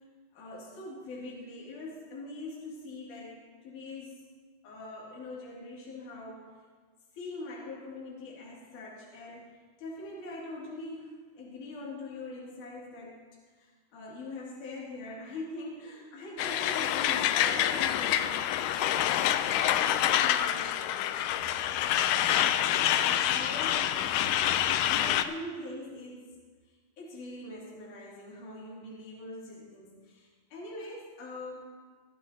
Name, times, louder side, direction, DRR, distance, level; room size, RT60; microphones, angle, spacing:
voice 1, 0.3-4.2 4.6-6.5 7.1-13.2 13.6-23.9 24.9-26.3 27.0-31.6, left 2 dB, 60° left, -6 dB, 3.8 m, -43 dB
Truck, 16.4-25.2, left 11 dB, 80° left, 1.8 m, -27 dB
22.5 x 12.0 x 2.8 m, 1.5 s
omnidirectional pair, 4.2 m